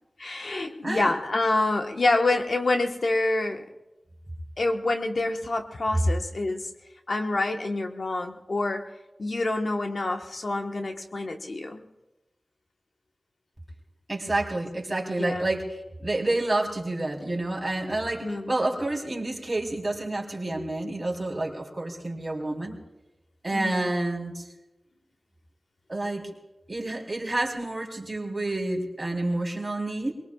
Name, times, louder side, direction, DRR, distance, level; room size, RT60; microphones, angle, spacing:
voice 1, 0.2-3.6 4.6-6.6 7.1-8.9 9.2-11.8 15.2-15.5 18.2-18.5 23.5-23.8, left 2 dB, 65° left, 3 dB, 1.3 m, -27 dB
voice 2, 14.1-22.8 23.4-24.5 25.9-26.3 26.7-30.1, right 2 dB, 30° right, -1 dB, 3.6 m, -29 dB
23.5 x 22.5 x 2.4 m, 1.0 s
wide cardioid pair, 75°, 0 cm